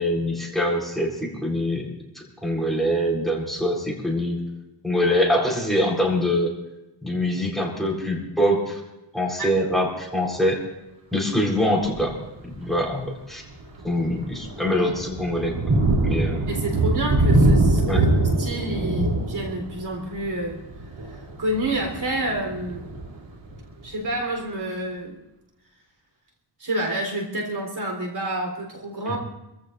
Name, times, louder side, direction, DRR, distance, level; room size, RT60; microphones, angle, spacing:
voice 1, 0.0-1.9 2.4-4.4 4.8-6.5 7.0-8.8 9.1-10.6 11.1-13.4 13.8-15.5 16.0-16.5 17.9-18.0 29.1-29.2, equal, ahead, -1 dB, 4.2 m, -24 dB
Thunder, 11.8-12.1 12.7-12.9 13.3-23.9, right 2 dB, 75° right, 3.4 m, -24 dB
voice 2, 16.5-20.6 21.1-22.9 23.8-25.2 26.6-29.2, right 1 dB, 55° right, 2 dB, 3.9 m, -29 dB
27.5 x 15.0 x 2.6 m, 0.94 s
wide cardioid pair, 110°, 45 cm